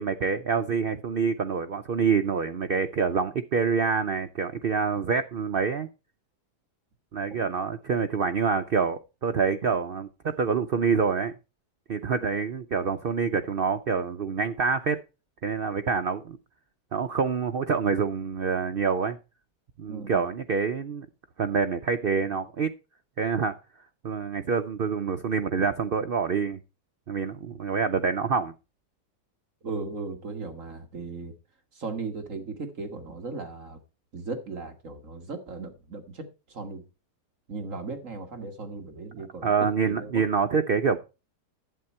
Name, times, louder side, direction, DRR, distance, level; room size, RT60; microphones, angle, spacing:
voice 1, 0.0-5.9 7.1-11.3 11.9-15.0 15.4-16.4 16.9-19.2 19.8-21.1 21.4-22.7 23.2-23.6 24.0-26.6 27.1-28.5 39.4-41.0, right 5 dB, 85° right, 0.5 m, -26 dB
voice 2, 19.9-20.2 29.6-31.3 31.7-33.8 34.1-36.9 37.5-39.5 39.8-40.2, right 3 dB, 50° right, 1.8 m, -37 dB
11.5 x 8.4 x 4.3 m
omnidirectional pair, 1.8 m